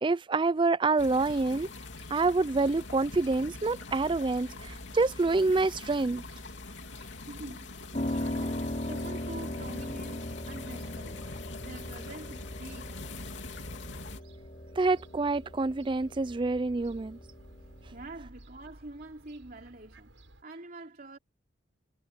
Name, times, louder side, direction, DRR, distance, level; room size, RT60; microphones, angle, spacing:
voice 1, 0.0-1.7 2.1-6.2 14.8-17.2, right 3 dB, 25° right, 0.4 m, -27 dB
sound 1, 1.0-14.2, left 3 dB, 70° left, 3.1 m, -43 dB
Fowl / Gull seagull, 1.7-20.4, right 1 dB, 80° right, 6.1 m, -56 dB
voice 2, 7.1-7.8 8.1-13.1 17.9-21.2, right 2 dB, 50° right, 3.0 m, -46 dB
Piano, 7.9-18.0, left 1 dB, 40° left, 2.8 m, -39 dB
head